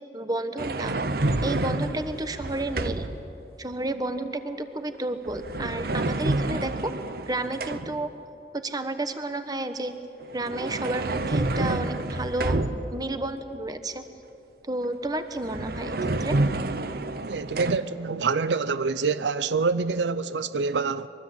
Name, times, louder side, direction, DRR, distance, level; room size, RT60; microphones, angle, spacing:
voice 1, 0.1-1.0 1.4-3.1 3.6-6.9 7.3-8.1 8.5-9.9 10.3-12.6 12.9-14.0 14.7-16.4, right 2 dB, 20° right, 1.2 m, -31 dB
sound 1, 0.6-3.3 5.2-8.1 10.2-13.1 15.0-15.1 15.4-17.8, right 2 dB, 60° right, 0.9 m, -29 dB
voice 2, 17.2-21.1, right 4 dB, 85° right, 0.6 m, -26 dB
23.5 x 22.5 x 8.3 m
head